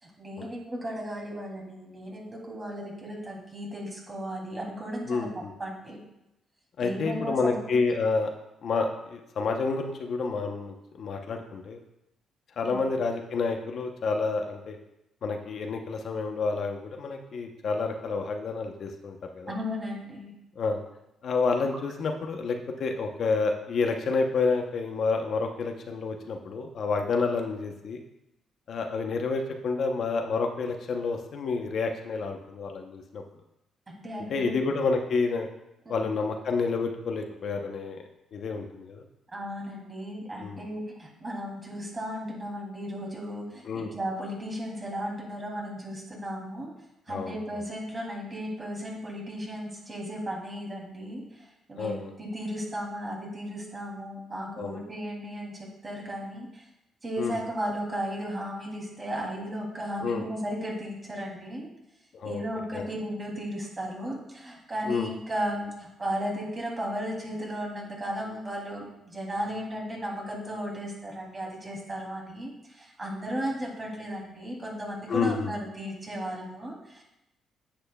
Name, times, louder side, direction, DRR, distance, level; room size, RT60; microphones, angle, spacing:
voice 1, 0.0-5.3 5.6-6.0 6.8-7.8 12.6-12.8 19.5-20.3 33.9-34.6 35.9-36.1 39.3-46.7 47.1-56.6 57.0-61.7 62.2-77.0, equal, 30° right, -2 dB, 2.8 m, -35 dB
voice 2, 5.1-5.5 6.8-8.3 8.6-11.8 12.6-14.8 15.2-19.5 20.6-20.8 21.2-28.0 28.7-33.2 34.3-35.5 35.9-38.0 38.3-39.0 40.4-40.6 43.6-43.9 47.1-47.3 51.8-52.1 54.6-54.8 57.2-57.4 60.0-60.2 62.1-62.4 62.7-62.9 64.9-65.1 75.1-75.5, left 4 dB, 60° left, 4 dB, 0.8 m, -29 dB
10.0 x 7.9 x 2.3 m, 0.87 s
cardioid pair, 90°, 0 cm